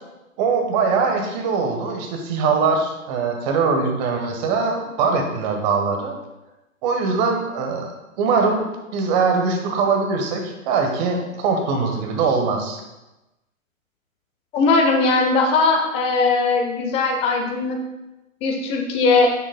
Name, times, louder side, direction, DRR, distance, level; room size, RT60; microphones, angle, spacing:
voice 1, 0.4-6.1 6.8-7.9 8.2-8.6 8.9-12.8, right 4 dB, 30° right, 3 dB, 1.2 m, -22 dB
voice 2, 14.5-17.8 18.4-19.3, left 3 dB, 15° left, 3 dB, 0.6 m, -19 dB
8.8 x 6.9 x 2.2 m, 1.0 s
hypercardioid pair, 135°, 41 cm